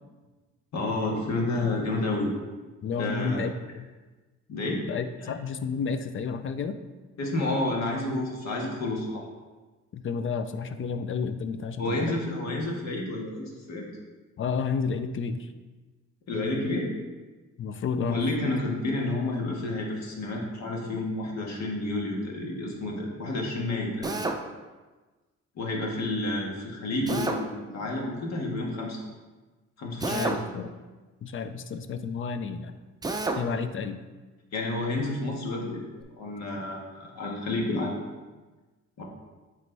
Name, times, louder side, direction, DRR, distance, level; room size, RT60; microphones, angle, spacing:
voice 1, 0.7-2.3 2.9-3.5 4.5-4.9 5.2-5.3 7.2-9.2 11.8-13.9 16.3-16.9 18.0-24.2 25.5-29.0 29.8-30.4 34.5-35.8 36.2-37.9 39.0-39.1, left 2 dB, 65° left, -1 dB, 1.6 m, -30 dB
voice 2, 2.8-3.8 4.9-6.8 9.9-12.2 14.4-15.5 17.6-18.2 30.1-30.7 31.2-32.7 33.4-34.0, left 5 dB, 45° left, 10 dB, 0.5 m, -31 dB
Drill, 24.0-24.4 27.1-27.4 30.0-30.5 33.0-33.4, right 3 dB, 15° right, 0.5 m, -29 dB
9.1 x 3.3 x 3.4 m, 1.2 s
cardioid pair, 90°, 30 cm